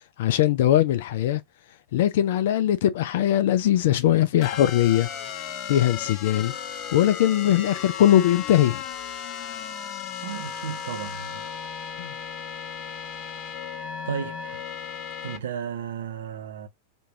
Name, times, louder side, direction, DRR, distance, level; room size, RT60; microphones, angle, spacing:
voice 1, 0.2-1.4 1.9-5.1 5.7-6.5 6.9-8.8 12.0-12.1, left 12 dB, 55° left, 0.3 m, -21 dB
sound 1, 4.4-15.4, left 8 dB, 35° left, 0.7 m, -35 dB
voice 2, 10.2-11.5 14.0-14.7 15.2-16.7, right 8 dB, 60° right, 0.7 m, -34 dB
3.5 x 2.8 x 2.8 m
figure-of-eight pair, 90°, 0 cm